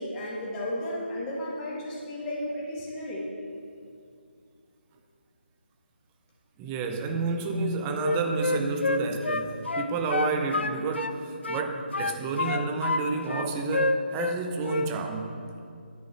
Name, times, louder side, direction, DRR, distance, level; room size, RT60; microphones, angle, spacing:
voice 1, 0.0-3.3, left 1 dB, 15° left, -5 dB, 1.6 m, -33 dB
voice 2, 6.6-15.3, right 4 dB, 15° right, 4 dB, 0.5 m, -30 dB
Wind instrument woodwind instrument, 8.0-11.2 11.4-13.0 13.3-14.4 14.6-14.9, left 3 dB, 75° left, 0.5 m, -28 dB
9.7 x 5.4 x 5.5 m, 2.4 s
figure-of-eight pair, 155°, 6 cm